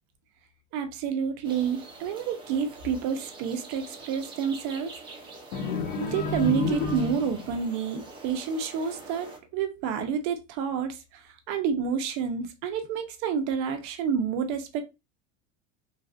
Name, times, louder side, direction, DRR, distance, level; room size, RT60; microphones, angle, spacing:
voice 1, 0.7-4.9 6.0-14.8, right 7 dB, 50° right, 0.7 m, -29 dB
sound 1, 1.4-9.4, right 3 dB, 15° right, 0.8 m, -45 dB
sound 2, 5.5-7.6, left 4 dB, 80° left, 0.8 m, -30 dB
3.2 x 2.4 x 2.4 m
supercardioid pair, 150°, 36 cm